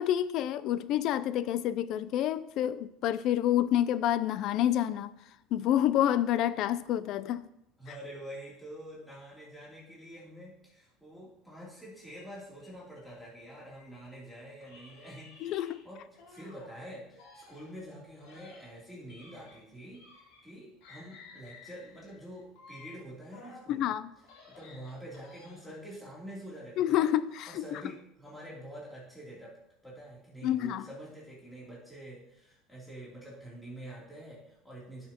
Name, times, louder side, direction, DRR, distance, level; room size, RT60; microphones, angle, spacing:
voice 1, 0.0-5.1 5.5-7.4 15.4-15.8 23.7-24.1 26.8-27.8 30.4-30.9, left 11 dB, 55° left, 0.4 m, -28 dB
voice 2, 7.8-15.5 15.8-23.9 24.5-27.1 27.5-29.6 29.8-35.1, right 1 dB, 5° left, 3.0 m, -47 dB
sound 1, 12.1-14.2 14.6-16.8 17.1-20.6 20.8-23.7 24.1-25.8, left 3 dB, 80° left, 3.4 m, -55 dB
11.5 x 6.6 x 2.9 m
supercardioid pair, 120°, 0 cm